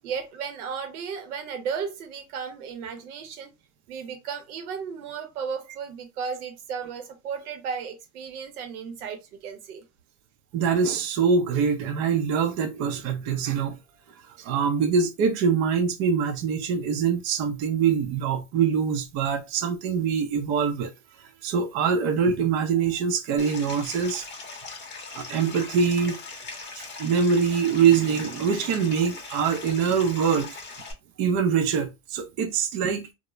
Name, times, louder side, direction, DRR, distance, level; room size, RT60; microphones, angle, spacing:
voice 1, 0.0-3.5 3.9-9.8, right 6 dB, 85° right, 0.9 m, -34 dB
voice 2, 10.5-13.8 14.4-20.9 21.2-24.2 25.1-26.2 26.8-30.5 31.2-33.1, right 6 dB, 40° right, 0.6 m, -24 dB
Stream, 23.4-30.9, left 4 dB, 25° left, 0.7 m, -40 dB
2.3 x 2.1 x 3.0 m
supercardioid pair, 125°, 43 cm